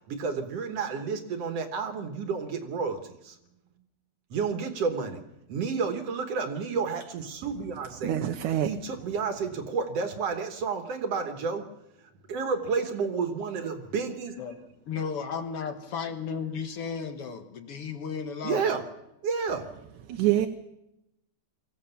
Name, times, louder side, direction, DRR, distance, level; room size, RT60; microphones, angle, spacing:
voice 1, 0.1-3.4 4.3-5.2 5.5-8.2 8.6-11.7 12.3-14.4 18.4-18.9 19.2-19.7, right 5 dB, 60° right, 7 dB, 2.3 m, -30 dB
voice 2, 8.0-8.7 20.1-20.5, right 12 dB, 80° right, 5 dB, 2.4 m, -25 dB
voice 3, 14.4-18.8, left 6 dB, 55° left, 7 dB, 1.9 m, -34 dB
23.0 x 16.0 x 7.1 m, 0.87 s
omnidirectional pair, 3.5 m